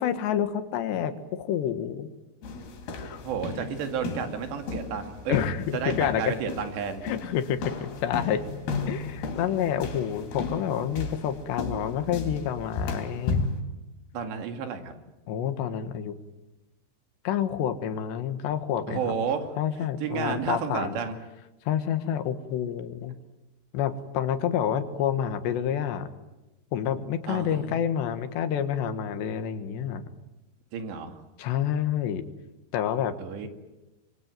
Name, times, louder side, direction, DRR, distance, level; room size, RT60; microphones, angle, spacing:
voice 1, 0.0-2.1 2.9-3.2 5.3-6.3 7.0-8.5 8.9-13.4 15.3-16.2 17.3-19.1 19.6-21.0 21.7-23.2 23.7-26.1 26.7-30.1 31.4-32.2 32.7-33.2, left 9 dB, 90° left, 10 dB, 3.8 m, -28 dB
sound 1, 2.4-13.6, left 3 dB, 70° left, 4.9 m, -34 dB
voice 2, 3.2-5.4 5.7-7.1 14.1-14.9 18.9-19.5 20.0-21.2 27.3-27.8 30.7-31.2 33.2-33.5, right 6 dB, 85° right, 7 dB, 4.4 m, -31 dB
26.5 x 24.0 x 9.2 m, 1.0 s
omnidirectional pair, 4.9 m